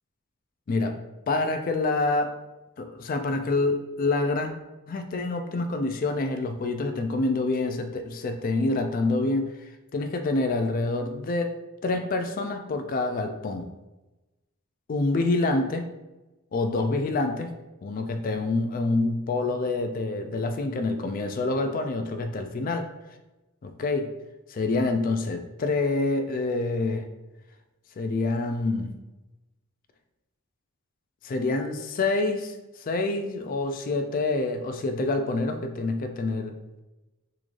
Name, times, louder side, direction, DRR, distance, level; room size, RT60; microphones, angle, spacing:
voice 1, 1.3-2.3 2.8-4.5 4.9-11.6 11.8-13.7 14.9-15.8 16.5-17.5 17.8-22.9 23.6-24.1 24.5-27.1 28.0-28.9 31.2-36.8, left 2 dB, 40° left, 7 dB, 0.3 m, -27 dB
3.7 x 3.1 x 2.5 m, 1.0 s
head